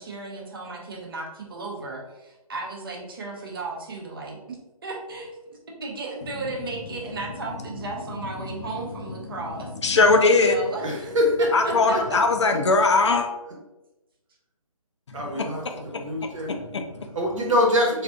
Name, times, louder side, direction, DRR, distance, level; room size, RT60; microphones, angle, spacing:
voice 1, 0.0-4.6 4.8-5.3 5.8-9.7 10.3-11.1 11.4-12.2, right 3 dB, 40° right, -1 dB, 0.7 m, -35 dB
voice 2, 9.8-10.6 11.5-13.3 15.1-15.5 15.9-17.1, left 3 dB, 50° left, 5 dB, 0.4 m, -21 dB
voice 3, 10.8-11.5 11.9-12.0 15.1-16.5 17.1-18.0, left 1 dB, 60° right, -1 dB, 1.0 m, -24 dB
3.5 x 2.4 x 2.5 m, 1.0 s
hypercardioid pair, 160°, 19 cm